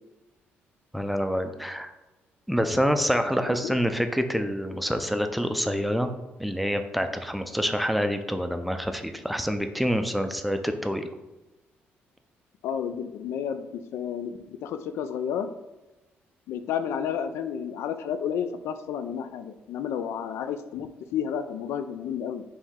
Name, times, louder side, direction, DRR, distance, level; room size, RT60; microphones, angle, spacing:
voice 1, 0.9-1.9 2.5-6.1 6.4-11.1, equal, ahead, 7 dB, 0.4 m, -27 dB
voice 2, 3.4-3.8 12.6-15.5 16.5-22.4, left 8 dB, 85° left, 10 dB, 0.4 m, -31 dB
4.4 x 3.0 x 3.6 m, 1.1 s
cardioid pair, 105°, 4 cm